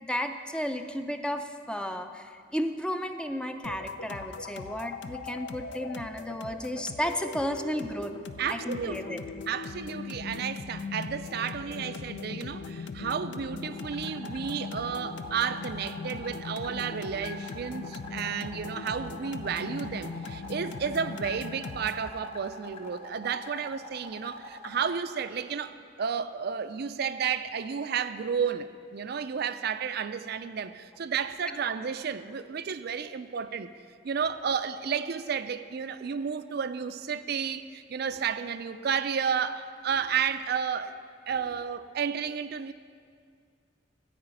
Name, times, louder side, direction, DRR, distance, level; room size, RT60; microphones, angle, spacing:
voice 1, 0.0-8.1 8.5-9.2 31.5-31.6, equal, 5° left, 7 dB, 0.5 m, -33 dB
sound 1, 3.6-22.1, left 4 dB, 70° left, 0.5 m, -40 dB
voice 2, 8.4-9.2 9.5-33.7 34.0-40.9 41.3-42.7, right 7 dB, 60° right, 11 dB, 0.4 m, -32 dB
sound 2, 13.6-25.0, left 2 dB, 35° left, 1.0 m, -44 dB
13.5 x 5.0 x 8.9 m, 2.2 s
head